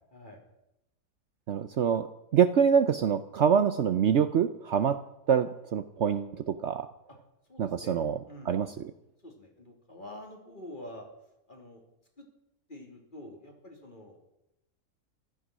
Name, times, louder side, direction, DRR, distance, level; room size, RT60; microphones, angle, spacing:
voice 1, 1.5-5.0 5.3-6.9 7.6-8.2 8.5-8.7, right 7 dB, 60° right, 12 dB, 0.9 m, -25 dB
voice 2, 7.5-7.9 8.3-8.6 9.2-11.0 11.5-11.8 12.2-12.3 12.7-14.2, left 1 dB, 35° left, 1 dB, 3.4 m, -47 dB
15.5 x 13.0 x 6.2 m, 0.87 s
omnidirectional pair, 1.5 m